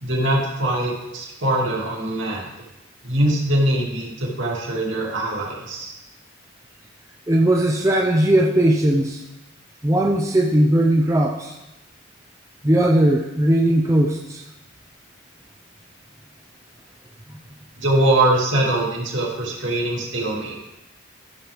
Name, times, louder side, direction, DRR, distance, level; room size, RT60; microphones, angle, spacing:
voice 1, 0.0-2.5 3.0-5.9 17.8-20.6, right 1 dB, 60° right, -3 dB, 2.5 m, -22 dB
voice 2, 7.3-9.2 9.8-11.6 12.6-14.4, right 1 dB, 15° right, 1 dB, 0.6 m, -18 dB
13.5 x 7.4 x 3.5 m, 0.94 s
head